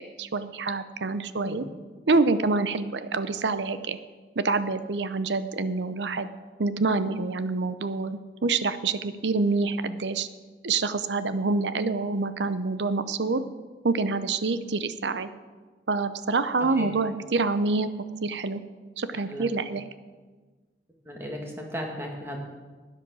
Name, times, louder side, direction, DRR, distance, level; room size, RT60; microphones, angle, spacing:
voice 1, 0.2-1.6 2.1-4.0 4.4-6.3 6.6-10.3 10.6-13.4 13.8-15.3 15.9-17.9 18.2-18.6 19.0-19.8, right 3 dB, 85° right, 12 dB, 0.7 m, -26 dB
voice 2, 21.1-22.4, equal, 15° right, 1 dB, 2.0 m, -35 dB
12.5 x 9.7 x 6.2 m, 1.4 s
head